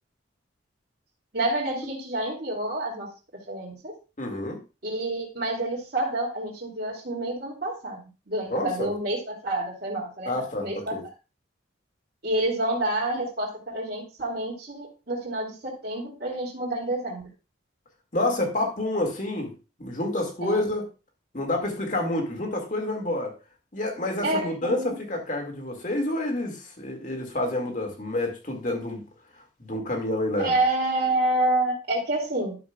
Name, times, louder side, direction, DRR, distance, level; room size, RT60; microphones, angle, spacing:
voice 1, 1.3-3.1 3.5-3.9 4.8-8.0 8.3-11.0 12.2-17.2 20.4-20.6 24.2-25.0 30.4-32.6, right 1 dB, 55° right, -6 dB, 2.6 m, -28 dB
voice 2, 4.2-4.6 8.5-8.9 10.3-11.0 18.1-19.5 19.8-20.8 21.3-23.3 23.7-29.0 29.6-30.5, left 1 dB, 40° left, 2 dB, 2.1 m, -28 dB
12.5 x 7.0 x 2.3 m, 0.30 s
head